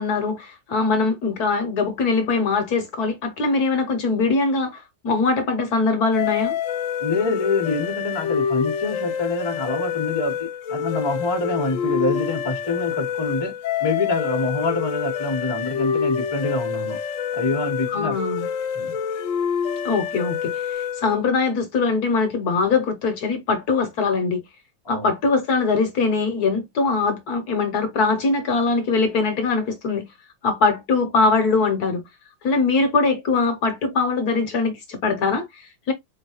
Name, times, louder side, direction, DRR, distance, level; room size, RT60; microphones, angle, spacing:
voice 1, 0.0-6.6 17.9-18.5 19.8-24.4 24.9-30.1 30.4-32.0 32.4-35.9, left 4 dB, 65° left, 1.2 m, -22 dB
sound 1, 6.1-21.2, left 7 dB, 90° left, 0.6 m, -27 dB
voice 2, 7.0-13.5 13.8-17.0 17.3-18.2 18.7-19.0 24.9-25.1, left 3 dB, 20° left, 0.7 m, -26 dB
4.1 x 3.0 x 2.9 m
omnidirectional pair, 2.0 m